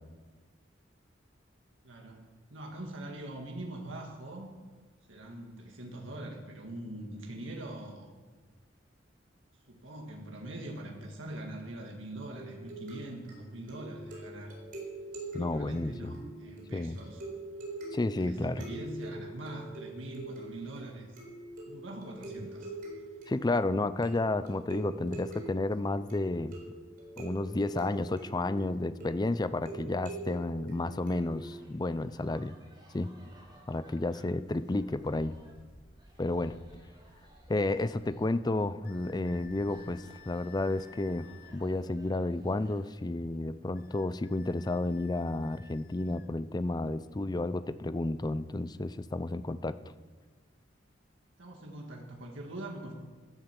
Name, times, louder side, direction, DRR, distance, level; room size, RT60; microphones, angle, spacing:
voice 1, 1.8-4.5 5.1-8.1 9.7-14.5 15.3-17.2 18.1-21.2 21.7-22.7 34.1-34.4 51.4-52.9, right 1 dB, 80° right, 1 dB, 1.9 m, -43 dB
sound 1, 12.3-31.5, right 2 dB, 50° right, 4.2 m, -45 dB
voice 2, 15.3-16.2 16.7-17.0 17.9-18.7 23.3-26.6 27.2-32.6 32.9-33.1 33.7-35.3 36.2-36.6 37.5-49.8, left 2 dB, 20° left, 14 dB, 0.5 m, -31 dB
sound 2, 31.0-42.9, equal, 25° right, 3.6 m, -57 dB
sound 3, 38.8-41.6 43.8-46.3, left 8 dB, 50° left, 0.7 m, -57 dB
14.5 x 11.0 x 5.9 m, 1.3 s
head